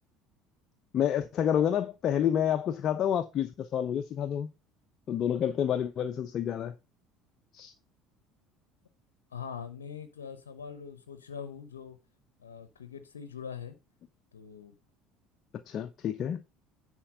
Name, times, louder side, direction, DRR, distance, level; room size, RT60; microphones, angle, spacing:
voice 1, 0.9-4.5 5.1-6.7 7.5-7.7 15.7-16.4, left 9 dB, 50° left, 0.7 m, -29 dB
voice 2, 9.3-12.0 12.4-13.7 14.3-14.7, left 7 dB, 85° left, 0.8 m, -42 dB
10.0 x 4.5 x 5.3 m
hypercardioid pair, 65°, 0 cm